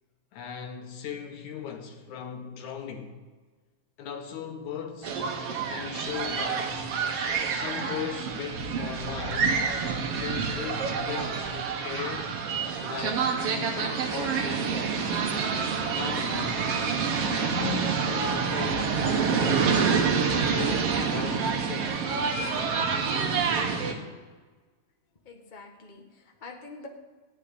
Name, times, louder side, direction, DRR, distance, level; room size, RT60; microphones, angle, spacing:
voice 1, 0.3-3.2 4.0-5.2 5.7-6.7 7.4-9.6 10.1-12.3 12.8-15.0 15.9-16.7 17.2-19.8 20.4-23.1, left 6 dB, 70° left, 2.8 m, -38 dB
sound 1, 5.0-23.9, right 5 dB, 60° right, 2.0 m, -27 dB
voice 2, 25.2-26.9, left 3 dB, 35° left, 0.7 m, -46 dB
14.0 x 6.2 x 9.9 m
omnidirectional pair, 3.5 m